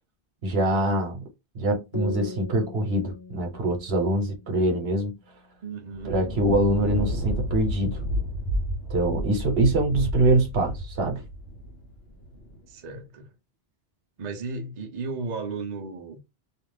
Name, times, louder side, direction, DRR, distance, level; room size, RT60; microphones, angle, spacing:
voice 1, 0.4-1.3 1.5-5.1 6.0-8.0 8.9-11.2, right 2 dB, 75° right, 1.0 m, -24 dB
sound 1, 1.9-5.4, left 4 dB, 40° left, 0.9 m, -40 dB
voice 2, 5.6-6.1 12.7-13.3 14.2-16.2, right 4 dB, 50° right, 0.6 m, -34 dB
Thunder, 5.9-12.6, left 1 dB, 80° left, 1.0 m, -31 dB
2.4 x 2.3 x 3.2 m
omnidirectional pair, 1.0 m